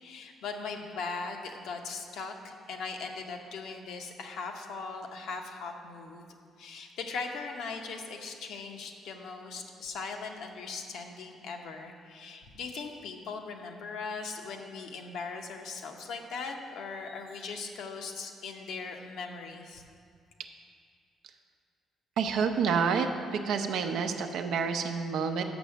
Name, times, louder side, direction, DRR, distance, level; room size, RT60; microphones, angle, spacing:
voice 1, 0.0-6.3 6.6-19.8, left 4 dB, 80° left, 3 dB, 0.8 m, -39 dB
voice 2, 22.2-23.1 23.4-25.4, right 6 dB, 80° right, 6 dB, 0.6 m, -28 dB
6.2 x 6.1 x 6.7 m, 2.2 s
cardioid pair, 90°, 0 cm